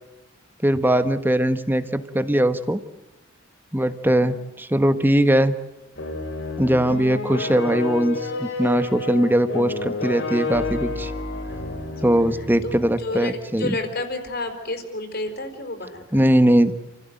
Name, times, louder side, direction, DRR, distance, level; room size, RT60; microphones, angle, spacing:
voice 1, 0.6-2.8 3.7-5.5 6.6-11.1 12.0-13.8 16.1-16.7, right 1 dB, 10° right, 11 dB, 1.3 m, -20 dB
voice 2, 4.0-4.5 12.3-16.2, left 2 dB, 50° left, 6 dB, 4.6 m, -32 dB
sound 1, 6.0-12.9, left 3 dB, 65° left, 4.7 m, -29 dB
29.0 x 16.0 x 9.3 m, 0.98 s
head